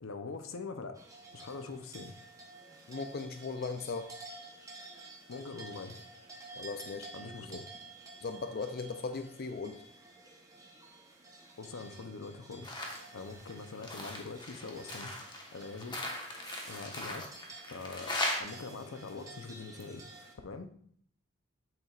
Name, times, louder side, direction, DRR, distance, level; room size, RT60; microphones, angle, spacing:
voice 1, 0.0-1.0 1.3-2.1 5.3-6.0 7.1-7.6 11.6-15.2 15.5-16.0 16.7-17.3 17.7-20.1 20.4-20.7, left 4 dB, 80° left, 8 dB, 0.7 m, -43 dB
sound 1, 0.9-20.3, right 2 dB, 15° right, 1.0 m, -52 dB
voice 2, 2.9-4.1 6.6-7.1 7.4-7.6 8.2-9.8, left 4 dB, 50° left, 7 dB, 0.5 m, -38 dB
sound 2, 12.6-13.1 13.4-18.4, left 1 dB, 20° left, 1.3 m, -38 dB
8.3 x 7.5 x 2.5 m, 0.62 s
head